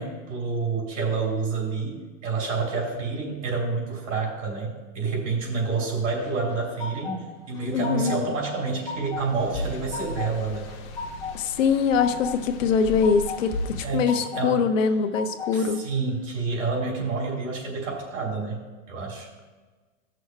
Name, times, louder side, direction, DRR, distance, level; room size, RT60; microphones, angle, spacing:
voice 1, 0.0-10.7 13.8-14.6 15.5-18.6 18.9-19.3, right 4 dB, 80° right, 0 dB, 3.0 m, -28 dB
sound 1, 6.2-7.2 7.5-8.3 8.6-9.2 9.6-10.3 10.7-11.4 11.7-12.4 12.7-13.4 13.8-14.5 14.8-15.6, left 4 dB, 10° left, 2.1 m, -35 dB
voice 2, 7.7-8.2 11.3-15.8, left 6 dB, 80° left, 9 dB, 0.9 m, -23 dB
sound 2, 9.1-13.8, left 2 dB, 45° left, 1.0 m, -36 dB
17.0 x 6.3 x 2.3 m, 1.3 s
supercardioid pair, 150°, 38 cm